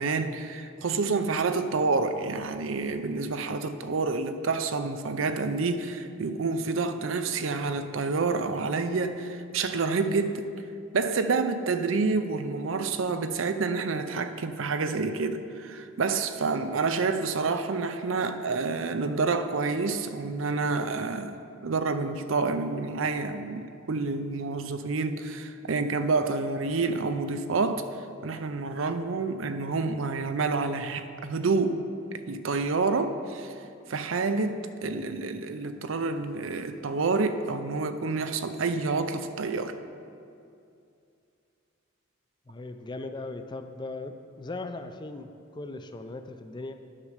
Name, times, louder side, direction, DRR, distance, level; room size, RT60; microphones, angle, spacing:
voice 1, 0.0-10.4 10.9-27.8 28.2-31.8 32.3-33.5 33.9-39.8, right 4 dB, 80° right, 9 dB, 0.6 m, -28 dB
voice 2, 42.5-46.8, left 2 dB, 20° left, 8 dB, 0.4 m, -38 dB
9.9 x 6.5 x 5.0 m, 2.5 s
head